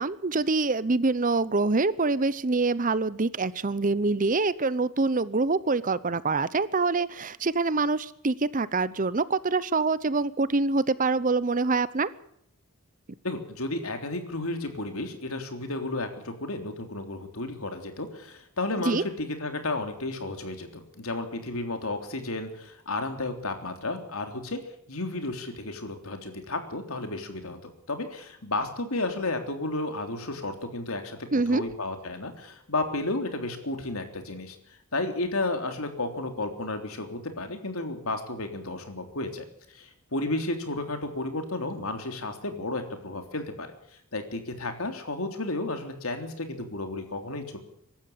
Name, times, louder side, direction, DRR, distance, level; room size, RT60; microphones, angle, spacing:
voice 1, 0.0-12.1 18.9-19.0 31.3-31.6, right 3 dB, 35° right, 17 dB, 0.8 m, -25 dB
voice 2, 13.2-24.6 24.9-34.6 34.9-43.7 44.1-47.6, left 2 dB, 70° left, 6 dB, 3.5 m, -32 dB
24.5 x 13.0 x 8.6 m, 0.70 s
head